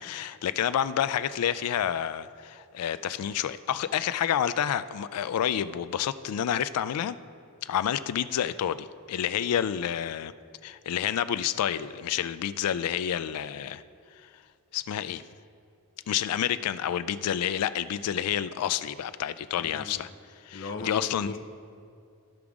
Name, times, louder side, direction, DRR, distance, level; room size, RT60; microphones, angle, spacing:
voice 1, 0.0-7.2 7.6-10.3 10.6-13.8 14.7-15.2 16.1-20.1 20.4-21.3, left 9 dB, 90° left, 14 dB, 0.3 m, -29 dB
voice 2, 19.6-20.1 20.5-21.4, left 3 dB, 55° left, 4 dB, 0.7 m, -38 dB
14.0 x 4.9 x 3.6 m, 2.3 s
head